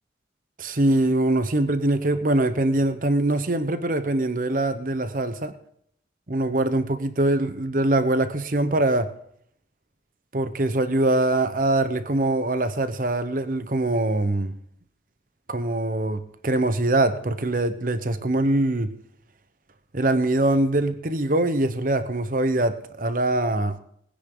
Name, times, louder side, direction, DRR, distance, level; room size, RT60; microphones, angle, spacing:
voice 1, 0.6-5.5 6.3-9.1 10.3-14.5 15.5-18.9 19.9-23.8, right 2 dB, 45° right, 10 dB, 1.0 m, -23 dB
20.5 x 9.9 x 3.9 m, 0.68 s
head